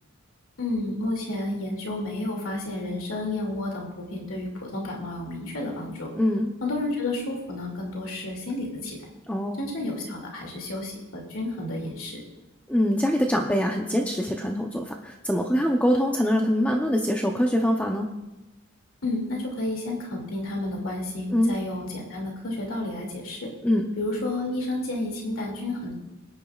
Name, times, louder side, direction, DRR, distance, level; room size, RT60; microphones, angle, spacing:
voice 1, 0.6-6.1 6.6-9.0 9.6-12.2 19.0-23.5 24.0-25.9, left 2 dB, 75° left, -1 dB, 2.5 m, -31 dB
voice 2, 6.2-6.5 9.3-9.6 12.7-18.1 21.3-21.5 23.6-23.9, equal, 5° left, 1 dB, 0.7 m, -24 dB
21.0 x 10.0 x 2.4 m, 1.0 s
head